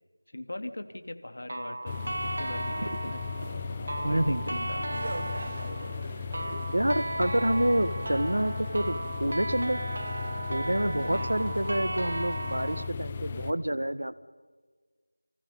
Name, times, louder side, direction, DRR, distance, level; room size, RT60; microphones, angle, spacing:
voice 1, 0.3-5.0 5.4-6.0 10.9-11.3, left 1 dB, 55° left, 8 dB, 2.3 m, -42 dB
sound 1, 1.5-12.9, right 1 dB, 55° right, 0.7 m, -36 dB
sound 2, 1.9-13.5, left 5 dB, 15° left, 0.7 m, -36 dB
voice 2, 4.0-4.7 6.5-9.8 10.5-14.1, right 1 dB, 90° right, 14 dB, 1.6 m, -28 dB
sound 3, 4.3-8.5 10.3-10.4 11.0-13.4, right 2 dB, 35° right, 1.5 m, -46 dB
30.0 x 25.0 x 5.6 m, 1.5 s
figure-of-eight pair, 175°, 0 cm